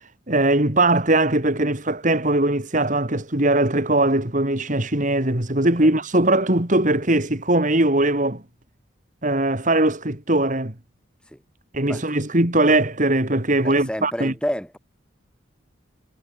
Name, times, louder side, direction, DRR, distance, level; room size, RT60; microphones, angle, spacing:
voice 1, 0.3-8.4 9.2-10.7 11.7-14.3, right 2 dB, 40° right, 2.9 m, -20 dB
voice 2, 13.6-14.8, equal, 5° left, 7.8 m, -29 dB
head